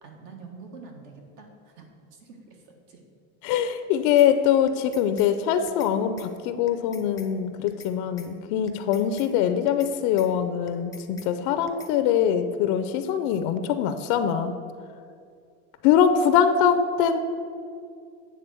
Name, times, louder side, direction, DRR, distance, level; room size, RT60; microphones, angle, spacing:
voice 1, 0.0-1.9 2.1-3.0 16.0-16.4, right 4 dB, 65° right, 2 dB, 1.5 m, -45 dB
voice 2, 3.4-14.5 15.8-17.2, left 8 dB, 80° left, 10 dB, 0.5 m, -23 dB
sound 1, 4.2-4.3 4.7-5.3 5.7-5.9 6.2-6.3 6.7-7.3 7.7-8.3 8.7-9.3 9.7-9.9 10.2-10.3 10.7-11.3 11.7-11.9, left 4 dB, 10° left, 0.6 m, -46 dB
8.7 x 3.7 x 6.9 m, 2.3 s
cardioid pair, 140°, 34 cm